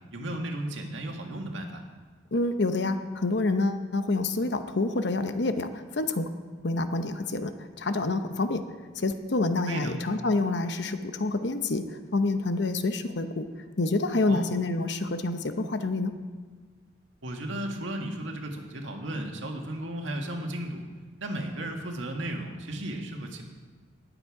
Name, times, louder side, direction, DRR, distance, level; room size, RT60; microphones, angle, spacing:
voice 1, 0.1-1.8 9.7-10.0 14.3-14.4 17.2-20.8 21.2-23.4, right 1 dB, 80° right, 2 dB, 1.7 m, -34 dB
voice 2, 2.3-6.3 6.6-8.6 9.0-11.8 12.1-13.5 13.8-16.1, left 2 dB, 60° left, 9 dB, 0.8 m, -27 dB
19.5 x 8.0 x 4.8 m, 1.5 s
head